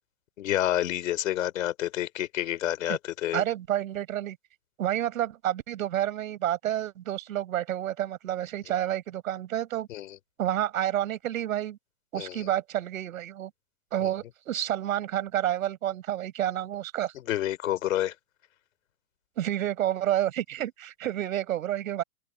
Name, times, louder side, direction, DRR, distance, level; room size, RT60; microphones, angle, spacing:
voice 1, 0.4-3.4 9.9-10.2 12.1-12.4 14.0-14.1 17.1-18.1, left 12 dB, 65° left, 4.7 m, -29 dB
voice 2, 3.3-4.4 4.8-9.9 10.4-11.8 12.1-13.5 13.9-17.1 19.4-22.0, right 12 dB, 65° right, 5.3 m, -29 dB
open air
hypercardioid pair, 165°, 43 cm